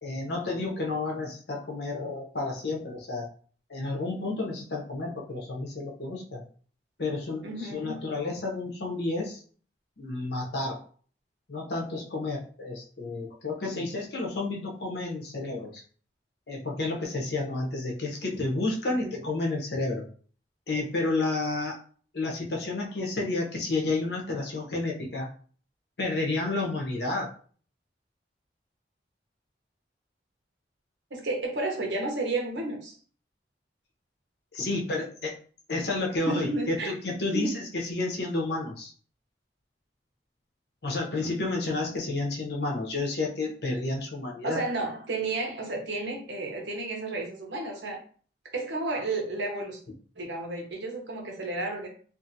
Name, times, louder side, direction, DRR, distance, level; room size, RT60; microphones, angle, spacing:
voice 1, 0.0-3.3 3.7-6.4 7.0-9.4 10.0-10.8 11.5-15.8 16.5-20.1 20.7-21.8 22.1-25.3 26.0-27.3 34.5-35.3 35.7-38.9 40.8-44.6, left 2 dB, 65° left, 0 dB, 0.7 m, -31 dB
voice 2, 7.4-8.0 18.9-19.1 31.1-32.9 36.2-36.9 37.3-37.5 44.4-48.0 48.5-49.8 50.2-51.9, right 2 dB, 80° right, 1 dB, 0.9 m, -32 dB
2.6 x 2.5 x 2.7 m, 0.44 s
head